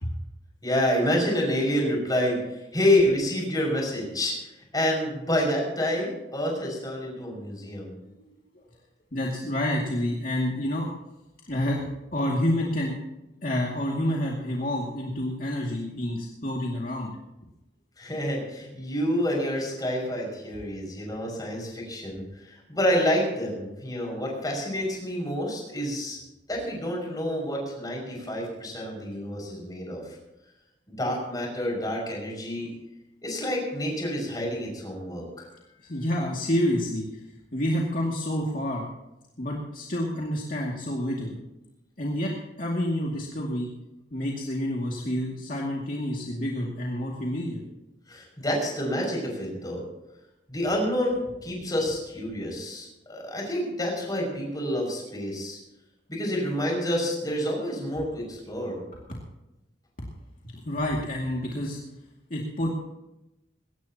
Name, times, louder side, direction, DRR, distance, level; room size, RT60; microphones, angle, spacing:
voice 1, 0.6-4.3 4.7-7.9 18.0-26.2 26.5-30.2 30.9-32.7 33.2-35.5 48.1-49.8 50.5-55.6 56.1-58.8, left 1 dB, 20° left, -1 dB, 6.1 m, -28 dB
voice 2, 9.1-10.9 11.4-12.9 13.4-17.1 35.9-37.1 37.5-38.8 39.4-41.4 42.0-43.7 44.1-47.6 60.6-61.8 62.3-62.7, left 1 dB, 50° left, -3 dB, 2.4 m, -28 dB
21.5 x 17.5 x 2.9 m, 0.94 s
head